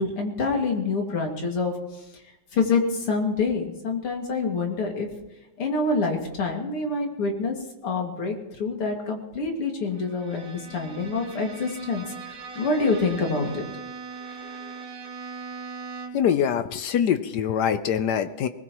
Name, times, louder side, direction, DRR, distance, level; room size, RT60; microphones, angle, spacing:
voice 1, 0.0-1.7 2.5-5.1 5.6-7.5 7.8-13.7, left 3 dB, 85° left, 1 dB, 3.2 m, -26 dB
Bowed string instrument, 9.9-16.4, right 4 dB, 75° right, 2.6 m, -39 dB
voice 2, 16.1-18.5, left 8 dB, 70° left, 11 dB, 1.0 m, -24 dB
20.5 x 20.0 x 3.1 m, 0.95 s
omnidirectional pair, 2.4 m